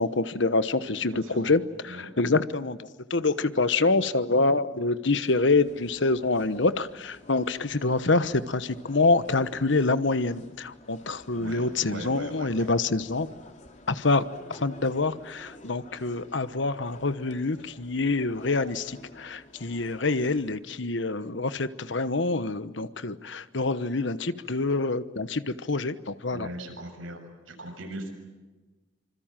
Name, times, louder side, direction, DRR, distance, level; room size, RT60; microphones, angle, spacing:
voice 1, 0.0-13.3 13.9-14.2 14.5-26.5, left 3 dB, 65° left, 14 dB, 1.1 m, -26 dB
voice 2, 1.1-1.5 1.8-2.1 11.3-12.7 26.3-27.2 27.5-28.1, right 1 dB, 85° right, 4 dB, 7.1 m, -40 dB
sound 1, 5.3-20.5, left 2 dB, 35° left, 3.2 m, -50 dB
26.5 x 26.5 x 7.5 m, 1.2 s
head